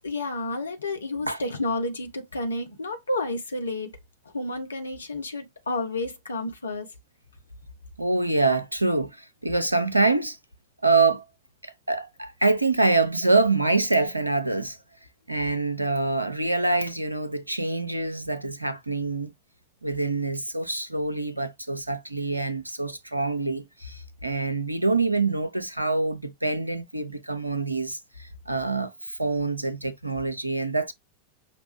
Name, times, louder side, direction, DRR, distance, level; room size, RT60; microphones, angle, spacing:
voice 1, 0.0-3.9 4.3-6.9, left 2 dB, 75° left, 0.9 m, -30 dB
voice 2, 8.0-10.4 10.8-11.2 11.6-14.8 15.3-19.3 19.8-30.9, right 3 dB, 85° right, 0.5 m, -25 dB
5.9 x 2.2 x 3.3 m
figure-of-eight pair, 90°, 0 cm